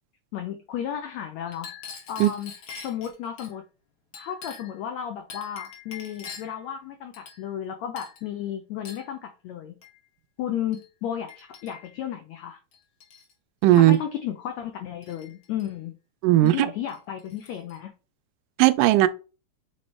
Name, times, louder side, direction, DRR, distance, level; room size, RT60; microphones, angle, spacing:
voice 1, 0.3-1.7 2.1-2.5 2.8-3.6 4.2-9.8 10.4-12.6 13.7-15.9 16.4-17.9, left 10 dB, 80° left, 1.6 m, -33 dB
Chink clink, 1.5-3.5 4.1-4.8 5.3-6.6 7.1-7.7 8.0-8.3 8.8-9.1 9.8-10.0 10.7-10.9 11.3-12.0 12.7-13.3 13.6-14.0 15.0-15.7 16.5-16.6 16.9-17.8, left 6 dB, 55° left, 1.5 m, -44 dB
voice 2, 13.6-14.0 16.2-16.7 18.6-19.1, right 15 dB, 80° right, 1.9 m, -17 dB
6.9 x 3.2 x 4.3 m
omnidirectional pair, 4.1 m